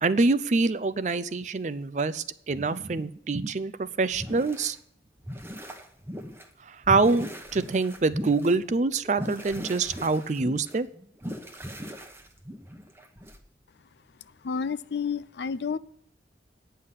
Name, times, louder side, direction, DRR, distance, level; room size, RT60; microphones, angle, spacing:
voice 1, 0.0-4.8 6.6-10.9, right 3 dB, 45° right, 15 dB, 0.5 m, -25 dB
sound 1, 4.1-4.8 5.2-6.5 6.8-13.4, equal, 15° right, 0.9 m, -38 dB
voice 2, 14.4-15.8, left 6 dB, 75° left, 17 dB, 0.4 m, -30 dB
9.4 x 5.7 x 8.0 m, 0.70 s
head